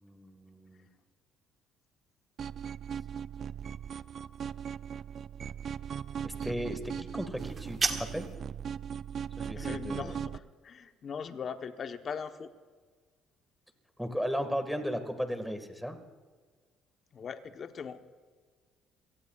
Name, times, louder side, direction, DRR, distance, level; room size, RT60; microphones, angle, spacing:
voice 1, 0.0-0.9 6.2-8.3 9.4-10.2 14.0-16.0, equal, ahead, 7 dB, 1.8 m, -36 dB
sound 1, 2.4-10.4, right 8 dB, 50° right, 0.4 m, -38 dB
sound 2, 7.4-8.4, right 4 dB, 30° right, 1.5 m, -33 dB
voice 2, 9.6-12.5 17.1-18.0, left 6 dB, 45° left, 8 dB, 1.0 m, -40 dB
27.5 x 18.5 x 2.4 m, 1.5 s
cardioid pair, 110°, 0 cm